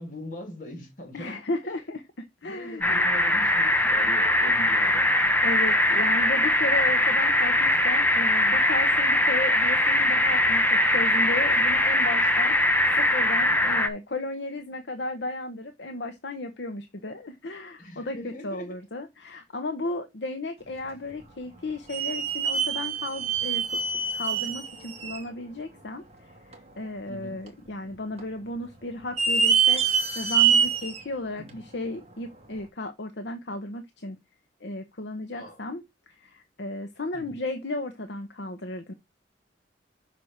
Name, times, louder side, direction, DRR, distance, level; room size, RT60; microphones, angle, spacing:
voice 1, 0.0-1.3 1.6-1.8 2.4-5.1 13.5-13.6 17.8-18.8 27.1-27.4 31.4-31.6 35.3-35.6 37.1-37.4, left 1 dB, 50° left, 3.3 m, -41 dB
voice 2, 1.1-2.9 5.4-12.5 12.9-26.0 26.8-34.2 34.6-38.9, left 2 dB, 70° left, 1.0 m, -34 dB
sound 1, 2.8-13.9, left 1 dB, 10° left, 0.9 m, -22 dB
sound 2, 21.1-21.2 21.9-25.3 25.8-25.9 26.5-26.6 27.5-27.9 28.2-28.3 29.0-31.0 31.5-31.6 32.5-32.6, right 6 dB, 35° right, 2.2 m, -25 dB
6.0 x 4.5 x 6.5 m
head